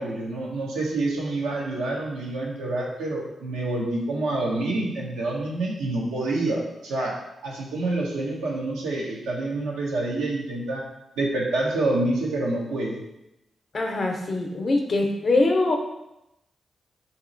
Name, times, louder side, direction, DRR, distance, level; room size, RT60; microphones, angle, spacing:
voice 1, 0.0-7.1 7.4-10.8 11.2-13.0, right 2 dB, 85° right, -2 dB, 0.7 m, -27 dB
voice 2, 13.7-15.8, left 2 dB, 55° left, 3 dB, 0.6 m, -23 dB
3.0 x 2.8 x 3.8 m, 0.88 s
supercardioid pair, 40°, 0 cm